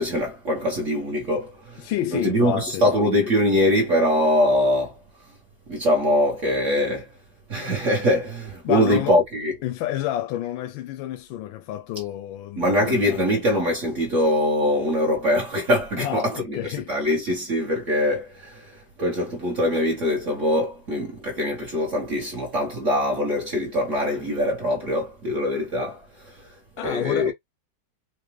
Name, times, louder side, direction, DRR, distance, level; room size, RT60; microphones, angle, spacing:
voice 1, 0.0-5.0 5.7-7.1 7.5-9.5 12.6-27.3, left 1 dB, 45° right, 1.2 m, -23 dB
voice 2, 1.8-2.9 8.6-9.2 9.6-13.5 16.0-16.9 26.8-27.3, left 12 dB, 85° left, 1.3 m, -29 dB
4.6 x 2.2 x 3.1 m
omnidirectional pair, 2.1 m